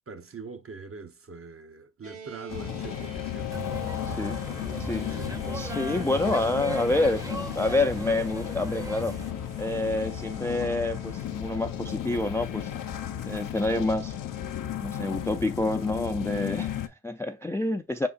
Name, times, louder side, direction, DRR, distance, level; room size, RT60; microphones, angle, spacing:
voice 1, 0.1-3.6 5.2-5.5 5.7-6.2 6.7-7.0, right 4 dB, 40° right, 0.8 m, -43 dB
sound 1, 2.0-16.4, right 5 dB, 65° right, 1.7 m, -49 dB
sound 2, 2.5-16.9, left 11 dB, 60° left, 0.6 m, -34 dB
sound 3, 3.5-9.3, right 1 dB, 10° right, 0.7 m, -37 dB
voice 2, 4.1-4.4 4.8-5.2 5.5-9.1 9.6-12.7 13.3-14.1 14.8-18.1, left 2 dB, 10° left, 0.3 m, -28 dB
5.0 x 3.9 x 2.4 m
cardioid pair, 55°, 36 cm